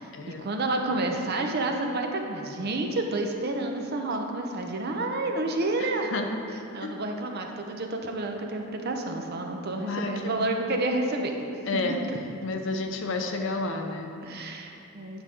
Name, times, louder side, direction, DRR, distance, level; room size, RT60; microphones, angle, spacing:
voice 1, 0.4-6.1 6.7-11.4 11.7-11.8 14.2-15.2, right 2 dB, 50° right, 3 dB, 0.7 m, -29 dB
voice 2, 5.8-6.3 6.8-7.0 9.9-10.5 11.6-12.0 12.4-14.1, left 3 dB, 65° left, 4 dB, 0.6 m, -31 dB
9.8 x 5.3 x 3.7 m, 2.8 s
head